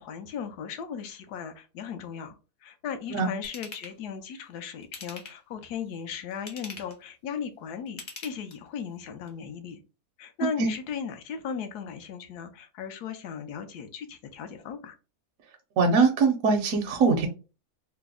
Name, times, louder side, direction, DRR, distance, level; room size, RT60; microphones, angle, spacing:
voice 1, 0.0-2.3 2.6-9.8 10.2-14.9, left 7 dB, 80° left, 1.1 m, -37 dB
Ratchet pawl / Tools, 3.4-3.9 4.8-5.5 6.3-7.0 7.9-8.8 9.3-9.4, left 4 dB, 45° left, 0.7 m, -42 dB
voice 2, 15.8-17.3, right 4 dB, 70° right, 0.9 m, -22 dB
3.2 x 2.0 x 3.5 m
omnidirectional pair, 1.7 m